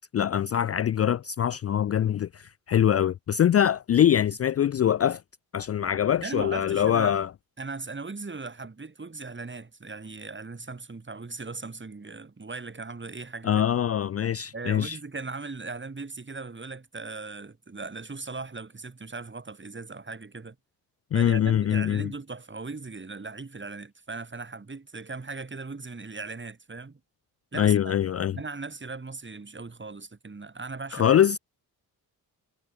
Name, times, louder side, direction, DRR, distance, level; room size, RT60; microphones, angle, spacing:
voice 1, 0.1-5.2 5.5-7.3 13.4-15.0 21.1-22.1 27.5-28.4 30.9-31.4, left 10 dB, 40° left, 0.4 m, -23 dB
voice 2, 6.2-7.2 7.6-13.6 14.5-20.6 21.1-27.0 27.5-27.9 28.3-31.4, right 3 dB, 30° right, 6.5 m, -38 dB
cardioid pair, 75°, 38 cm